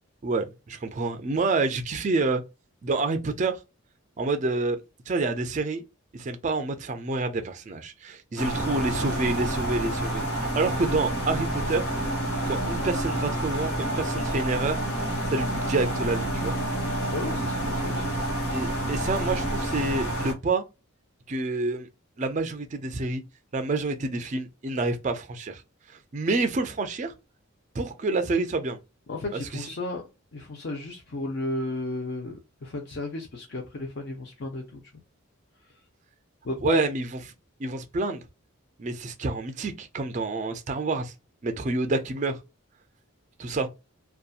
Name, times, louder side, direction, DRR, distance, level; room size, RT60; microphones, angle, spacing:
voice 1, 0.2-2.4 2.8-3.6 4.2-4.8 5.1-5.8 6.1-11.9 12.5-14.8 15.3-16.6 18.5-20.6 21.3-21.9 22.2-23.2 23.5-25.6 26.1-27.1 27.7-28.8 29.3-29.6 36.6-37.1 37.6-38.2 38.8-41.1 41.4-42.4 43.4-43.7, right 3 dB, 35° right, 0.3 m, -28 dB
sound 1, 8.4-20.3, right 1 dB, 90° left, 1.1 m, -28 dB
voice 2, 17.1-18.1 29.1-30.0 30.3-34.8 36.4-36.8, left 2 dB, 50° left, 0.5 m, -33 dB
2.7 x 2.3 x 2.4 m
head